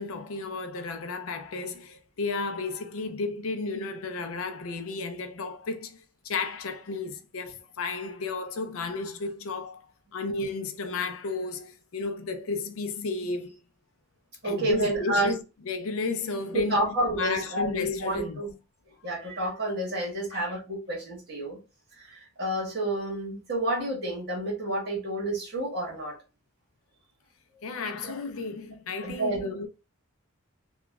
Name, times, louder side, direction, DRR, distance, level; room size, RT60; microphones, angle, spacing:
voice 1, 0.0-6.0 6.2-9.8 10.1-13.6 14.4-15.4 15.7-18.4 20.3-20.5 27.6-29.7, left 3 dB, 80° left, 0.5 m, -33 dB
voice 2, 14.4-15.3 16.5-18.5 19.0-21.6 21.9-26.2 28.0-28.2 29.0-29.5, right 1 dB, 50° right, 1.4 m, -29 dB
2.9 x 2.3 x 2.3 m
head